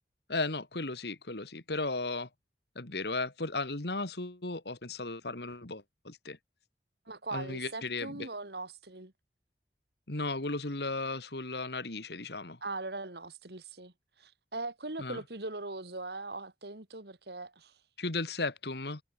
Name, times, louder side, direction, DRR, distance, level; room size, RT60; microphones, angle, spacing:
voice 1, 0.3-2.3 2.8-6.4 7.3-8.3 10.1-12.6 15.0-15.2 18.0-19.0, left 3 dB, 70° left, 2.2 m, -35 dB
voice 2, 7.1-9.1 12.6-17.7, right 2 dB, 65° right, 2.5 m, -40 dB
head